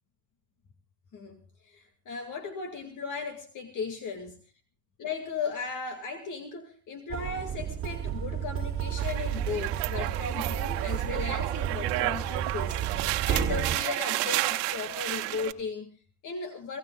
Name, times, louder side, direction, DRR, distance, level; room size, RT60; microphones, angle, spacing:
voice 1, 1.6-4.4 5.0-16.8, left 5 dB, 40° left, 6 dB, 2.3 m, -36 dB
sound 1, 7.1-13.8, right 9 dB, 30° right, 2.8 m, -32 dB
sound 2, 9.0-15.5, right 18 dB, 60° right, 1.5 m, -32 dB
26.0 x 17.5 x 2.4 m, 0.38 s
supercardioid pair, 110°, 47 cm